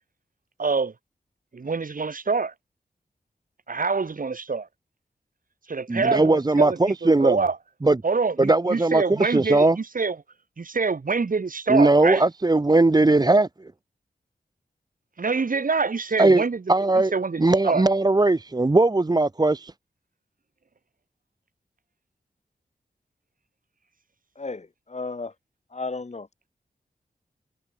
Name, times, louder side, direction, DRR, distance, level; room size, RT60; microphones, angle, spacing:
voice 1, 0.6-0.9 1.5-2.5 3.7-4.7 5.7-7.6 8.0-10.2 10.6-12.2 15.2-16.6 17.1-17.8, right 4 dB, 60° right, 4.0 m, -26 dB
voice 2, 5.9-7.4 7.8-8.0 8.4-9.8 11.7-13.5 16.2-16.4 16.7-17.1 17.4-19.7, right 2 dB, 25° right, 1.0 m, -19 dB
voice 3, 24.4-25.3 25.7-26.3, left 3 dB, 45° left, 4.2 m, -33 dB
wide cardioid pair, 65°, 16 cm